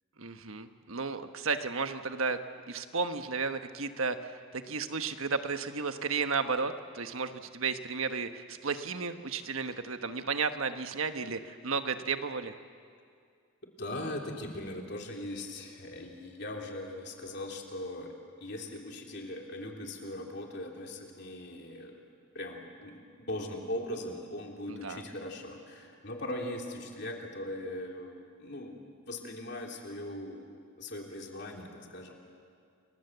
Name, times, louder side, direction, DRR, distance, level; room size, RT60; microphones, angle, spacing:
voice 1, 0.2-2.4 2.7-12.5 24.7-25.0, right 4 dB, 75° right, 8 dB, 1.3 m, -33 dB
voice 2, 13.8-18.1 18.4-22.0 22.3-23.0 23.3-28.8 29.1-30.4 30.8-32.2, left 1 dB, 50° left, 1 dB, 3.4 m, -40 dB
29.5 x 21.5 x 8.1 m, 2.2 s
head